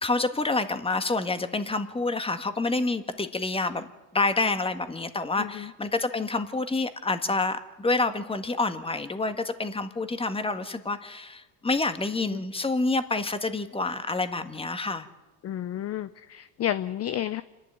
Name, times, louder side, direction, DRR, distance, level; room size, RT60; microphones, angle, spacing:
voice 1, 0.0-3.9 4.1-15.1, left 3 dB, 10° left, 10 dB, 1.7 m, -28 dB
voice 2, 5.4-5.7 12.2-12.4 15.4-17.4, left 11 dB, 35° left, 14 dB, 0.7 m, -31 dB
27.0 x 11.5 x 9.5 m, 1.1 s
supercardioid pair, 100°, 45 cm